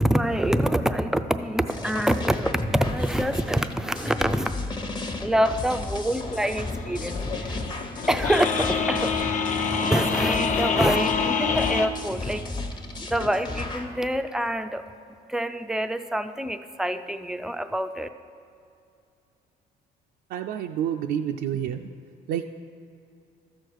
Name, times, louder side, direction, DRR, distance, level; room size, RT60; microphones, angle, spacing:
voice 1, 0.0-4.5 5.2-7.6 8.1-9.2 9.7-12.4 13.0-14.8 15.3-18.1, right 1 dB, 5° right, 9 dB, 0.4 m, -26 dB
sound 1, 1.7-13.9, left 2 dB, 25° left, 1.0 m, -33 dB
sound 2, 6.3-11.9, left 5 dB, 45° left, 0.7 m, -27 dB
voice 2, 20.3-21.8 22.3-22.4, right 9 dB, 70° right, 4 dB, 0.4 m, -28 dB
13.5 x 6.5 x 4.7 m, 2.5 s
cardioid pair, 110°, 17 cm